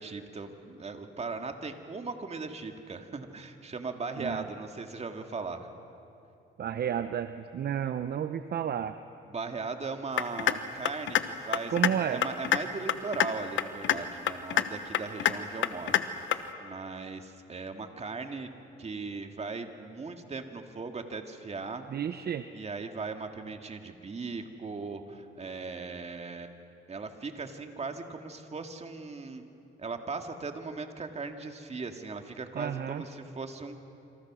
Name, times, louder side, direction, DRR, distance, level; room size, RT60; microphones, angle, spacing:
voice 1, 0.0-5.7 9.3-11.8 12.1-16.0 16.6-18.5 18.8-21.9 22.5-26.5 26.9-29.4 29.8-34.0, right 4 dB, 35° right, 5 dB, 2.2 m, -38 dB
voice 2, 6.6-9.0 11.7-12.2 21.9-22.5 32.5-33.0, right 9 dB, 55° right, 10 dB, 0.8 m, -31 dB
sound 1, 10.2-10.6 10.8-11.2 11.5-11.9 12.2-12.6 12.9-13.3 13.6-14.0 14.3-14.6 14.9-15.3 15.6-16.0 16.3-16.4, left 11 dB, 70° left, 1.2 m, -25 dB
27.5 x 26.5 x 6.3 m, 2.7 s
cardioid pair, 90°, 20 cm